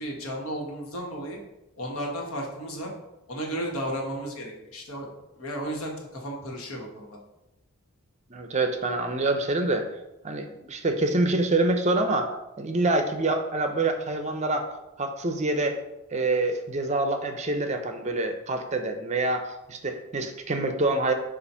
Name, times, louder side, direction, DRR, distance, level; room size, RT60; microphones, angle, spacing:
voice 1, 0.0-1.4 1.8-2.9 3.3-5.1 5.4-7.2, equal, 75° left, 0 dB, 1.3 m, -33 dB
voice 2, 8.3-9.9 10.2-14.7 15.0-15.8 16.1-21.1, right 2 dB, 30° right, 6 dB, 0.5 m, -26 dB
6.9 x 2.5 x 5.5 m, 0.95 s
head